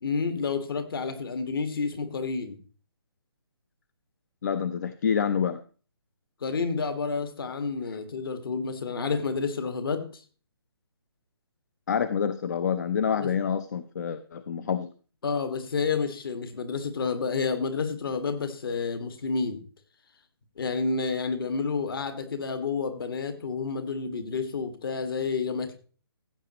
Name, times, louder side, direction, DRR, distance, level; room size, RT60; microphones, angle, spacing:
voice 1, 0.0-2.6 6.4-10.2 13.2-13.3 15.2-19.6 20.6-25.7, left 4 dB, 55° left, 8 dB, 1.8 m, -30 dB
voice 2, 4.4-5.6 11.9-14.9, left 7 dB, 40° left, 13 dB, 0.5 m, -27 dB
15.5 x 7.7 x 3.0 m, 0.38 s
hypercardioid pair, 160°, 14 cm